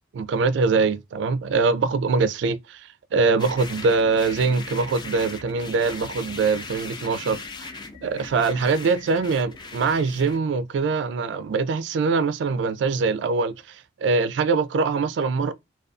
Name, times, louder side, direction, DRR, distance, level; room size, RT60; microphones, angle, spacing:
voice 1, 0.1-7.7 8.0-13.8 14.0-15.5, right 4 dB, 65° right, 0.3 m, -23 dB
sound 1, 3.4-10.4, left 3 dB, 25° left, 0.3 m, -39 dB
2.4 x 2.2 x 2.4 m
head